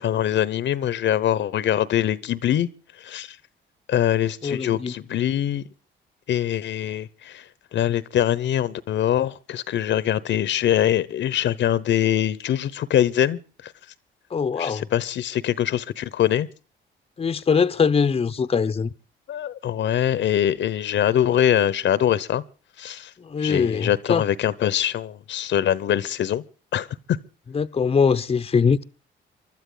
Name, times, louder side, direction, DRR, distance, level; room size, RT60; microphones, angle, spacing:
voice 1, 0.0-2.7 3.0-3.4 3.9-5.6 6.3-7.4 7.7-13.4 14.6-16.5 19.3-22.4 22.8-23.1 23.4-26.4 26.7-27.2, left 11 dB, 65° left, 0.9 m, -23 dB
voice 2, 4.4-4.9 14.3-14.9 17.2-18.9 23.2-24.3 27.5-28.8, left 5 dB, 30° left, 0.8 m, -22 dB
24.5 x 12.5 x 3.9 m
cardioid pair, 90°, 20 cm